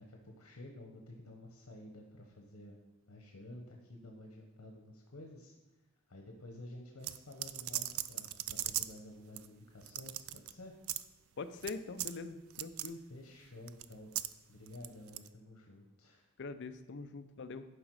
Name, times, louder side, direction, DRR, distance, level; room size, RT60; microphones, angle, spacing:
voice 1, 0.0-2.8 3.1-5.5 6.1-10.7 12.9-14.1 14.5-16.3, left 1 dB, 80° left, 2 dB, 1.0 m, -51 dB
sound 1, 7.0-9.0 9.4-9.5 9.8-10.5 10.8-11.0 11.6-11.7 12.0-12.2 12.5-12.9 13.7-14.3 14.7-15.3, right 14 dB, 70° right, 0.4 m, -38 dB
voice 2, 11.4-13.0 16.4-17.7, left 4 dB, 55° left, 10 dB, 0.6 m, -43 dB
11.5 x 5.0 x 4.7 m, 1.0 s
head